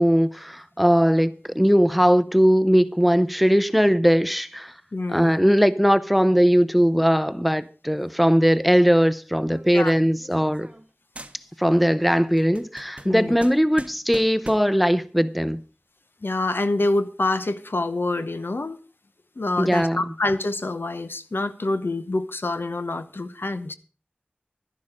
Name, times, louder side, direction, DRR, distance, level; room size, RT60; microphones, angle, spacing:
voice 1, 0.0-4.7 5.1-10.7 11.6-15.6 19.6-20.1, equal, ahead, 0.7 m, -19 dB
voice 2, 4.9-5.3 9.7-9.9 13.0-13.4 16.2-18.8 19.4-23.7, left 2 dB, 80° left, 0.8 m, -26 dB
sound 1, 9.5-10.9 11.2-11.8 12.2-14.8, right 1 dB, 35° right, 1.0 m, -43 dB
11.5 x 11.0 x 4.9 m
wide cardioid pair, 45°, 4 cm